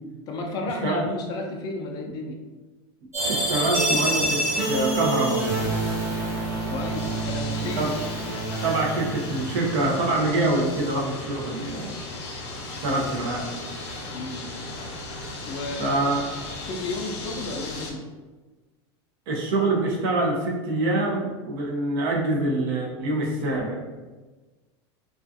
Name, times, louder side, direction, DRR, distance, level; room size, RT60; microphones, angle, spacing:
voice 1, 0.3-2.4 6.7-7.9 14.1-14.5 15.4-16.1 16.7-18.0, left 2 dB, 30° left, 1 dB, 0.4 m, -33 dB
sound 1, 3.1-9.9, right 2 dB, 20° right, 1.1 m, -27 dB
sound 2, 3.2-17.9, left 2 dB, 75° left, 0.6 m, -36 dB
voice 2, 3.2-5.5 7.8-7.9 8.6-12.0 12.5-13.5 15.8-16.2 19.3-24.0, right 2 dB, 55° right, -2 dB, 0.7 m, -25 dB
2.4 x 2.3 x 2.5 m, 1.3 s
supercardioid pair, 150°, 14 cm